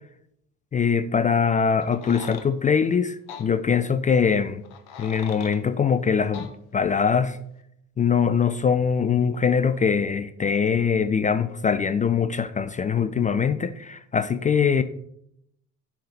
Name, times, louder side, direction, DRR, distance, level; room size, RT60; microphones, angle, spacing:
voice 1, 0.7-4.6 5.0-7.4 8.0-14.8, left 6 dB, 20° left, 13 dB, 0.3 m, -22 dB
sound 1, 1.8-2.5 3.3-3.5 4.6-5.6 6.3-6.5, left 6 dB, 55° left, 1.3 m, -40 dB
6.7 x 5.5 x 7.0 m, 0.75 s
hypercardioid pair, 60°, 46 cm